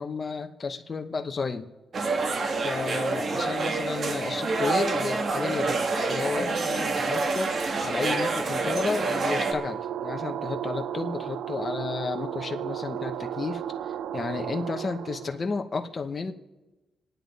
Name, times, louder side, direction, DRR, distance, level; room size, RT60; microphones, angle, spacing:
voice 1, 0.0-1.7 2.6-16.3, left 4 dB, 30° left, 5 dB, 0.8 m, -32 dB
sound 1, 1.9-9.5, right 3 dB, 40° right, 1.3 m, -27 dB
sound 2, 7.1-15.4, right 10 dB, 80° right, 0.4 m, -35 dB
26.5 x 9.2 x 4.0 m, 1.1 s
cardioid pair, 145°, 0 cm